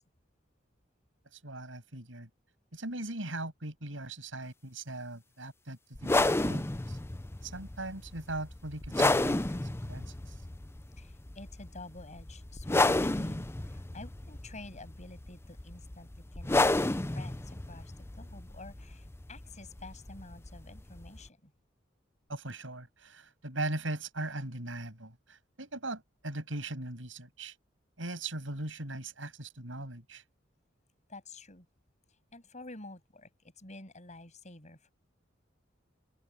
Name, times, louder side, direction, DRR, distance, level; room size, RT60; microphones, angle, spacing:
voice 1, 1.3-2.3 2.7-7.0 7.4-10.3 22.3-27.5 28.0-30.2, right 2 dB, 85° right, 6.9 m, -39 dB
sound 1, 6.0-21.3, left 2 dB, 15° left, 0.5 m, -32 dB
voice 2, 11.0-21.5 31.1-31.7 32.1-34.9, left 2 dB, 40° left, 7.2 m, -49 dB
open air
head